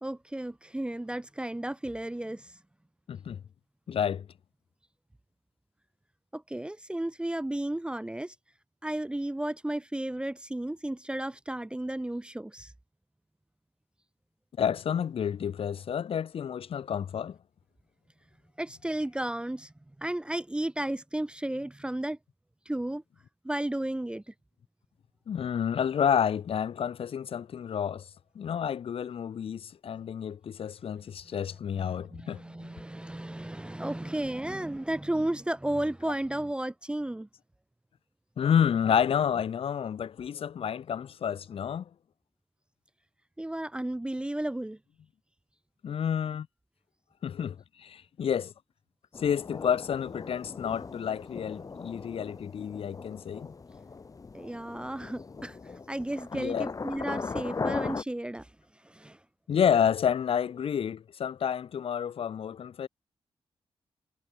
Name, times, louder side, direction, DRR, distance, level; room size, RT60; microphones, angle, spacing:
voice 1, 0.0-2.5 6.3-8.3 8.8-12.7 18.6-19.7 20.0-22.2 22.7-23.0 23.4-24.2 31.7-37.3 43.4-44.8 54.3-55.6 55.9-58.5 58.8-59.2, right 1 dB, 10° right, 0.4 m, -33 dB
voice 2, 3.1-3.4 3.9-4.3 14.6-17.4 25.3-28.1 28.3-32.7 38.4-41.9 45.8-46.5 47.2-48.5 49.2-53.5 56.3-56.7 59.5-62.9, left 8 dB, 65° left, 0.7 m, -29 dB
sound 1, 49.1-58.0, left 4 dB, 35° left, 1.2 m, -38 dB
wide cardioid pair, 110°, 10 cm